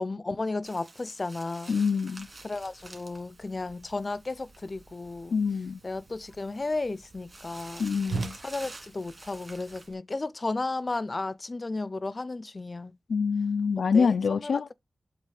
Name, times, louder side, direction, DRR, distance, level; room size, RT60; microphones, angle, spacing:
voice 1, 0.0-1.7 2.4-5.3 5.8-7.9 8.4-12.9 13.8-14.7, left 3 dB, 40° left, 0.5 m, -34 dB
sound 1, 0.6-9.9, right 2 dB, 30° right, 2.2 m, -50 dB
voice 2, 1.7-2.3 5.3-5.8 7.8-8.4 13.1-14.7, left 5 dB, 90° left, 0.3 m, -25 dB
Whoosh swoosh swish, 2.2-9.9, right 4 dB, 70° right, 0.9 m, -44 dB
7.5 x 3.1 x 4.8 m
wide cardioid pair, 95°, 0 cm